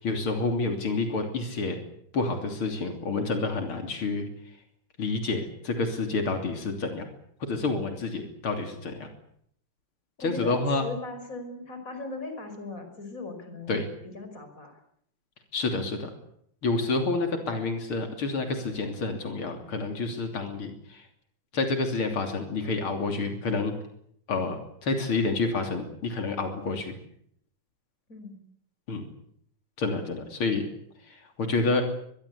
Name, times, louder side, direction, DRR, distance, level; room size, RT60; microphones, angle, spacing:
voice 1, 0.0-1.8 2.1-4.3 5.0-7.1 7.4-9.1 10.2-10.9 13.7-13.9 15.5-16.1 16.6-21.1 21.5-23.8 24.3-27.0 28.9-29.1 29.8-30.7 31.0-31.8, left 3 dB, 90° left, 5 dB, 4.0 m, -29 dB
voice 2, 10.2-13.8 14.0-14.8 28.1-28.4, left 3 dB, 40° left, 6 dB, 5.8 m, -38 dB
24.5 x 22.0 x 8.5 m, 0.69 s
omnidirectional pair, 2.3 m